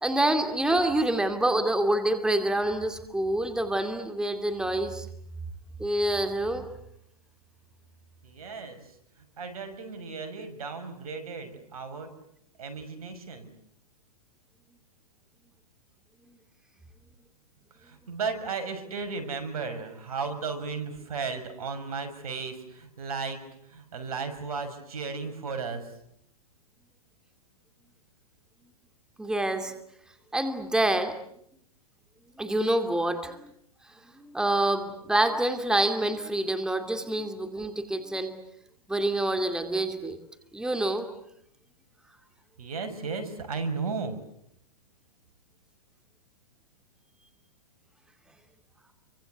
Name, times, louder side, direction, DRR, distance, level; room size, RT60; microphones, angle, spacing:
voice 1, 0.0-5.1 5.8-6.7 29.2-29.7 30.3-31.1 32.4-33.5 34.1-38.3 38.9-40.2 40.5-41.1, right 1 dB, 5° right, 7 dB, 2.5 m, -27 dB
voice 2, 8.2-8.9 9.4-12.1 12.6-13.5 17.8-23.4 23.7-25.9 42.6-44.2, right 4 dB, 75° right, 8 dB, 6.3 m, -35 dB
29.5 x 24.5 x 8.1 m, 0.71 s
hypercardioid pair, 125°, 19 cm